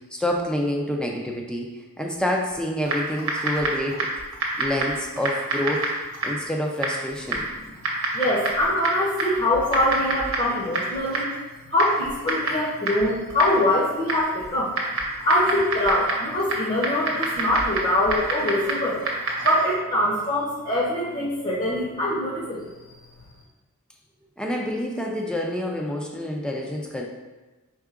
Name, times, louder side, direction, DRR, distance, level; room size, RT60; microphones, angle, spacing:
voice 1, 0.0-4.1 4.6-5.9 6.2-7.5 24.4-27.1, left 1 dB, 5° left, 0 dB, 0.4 m, -27 dB
Typing, 2.8-19.7, right 2 dB, 60° right, 0.9 m, -29 dB
voice 2, 8.1-11.3 11.7-14.7 15.2-19.0 19.4-22.7, left 1 dB, 35° left, -5 dB, 0.8 m, -23 dB
4.7 x 3.5 x 2.4 m, 1.2 s
head